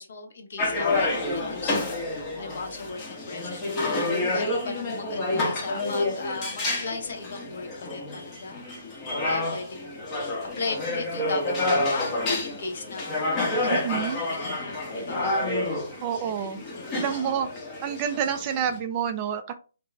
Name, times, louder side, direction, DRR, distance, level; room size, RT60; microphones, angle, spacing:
voice 1, 0.0-2.0 2.4-3.9 4.3-10.1 10.5-13.3 13.6-15.4 16.2-16.5 16.7-17.2, left 3 dB, 60° left, 3 dB, 0.8 m, -37 dB
sound 1, 0.6-18.8, left 2 dB, 20° left, 0.7 m, -29 dB
voice 2, 13.7-14.2 16.0-16.6 16.9-17.5 17.8-19.5, right 8 dB, 25° right, 8 dB, 0.3 m, -28 dB
2.5 x 2.1 x 3.0 m, 0.35 s
hypercardioid pair, 155°, 0 cm